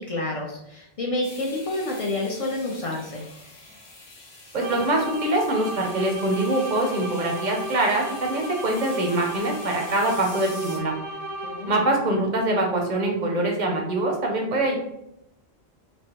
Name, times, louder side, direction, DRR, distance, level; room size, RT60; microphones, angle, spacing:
voice 1, 0.0-3.2 11.4-11.8, left 2 dB, 45° left, -2 dB, 0.5 m, -29 dB
sound 1, 1.2-10.8, left 2 dB, 85° left, 1.1 m, -45 dB
voice 2, 4.5-10.9 11.7-14.8, right 2 dB, 55° right, 1 dB, 0.6 m, -24 dB
sound 2, 4.6-12.1, right 1 dB, 80° right, 0.9 m, -35 dB
3.1 x 2.1 x 2.9 m, 0.81 s
omnidirectional pair, 1.0 m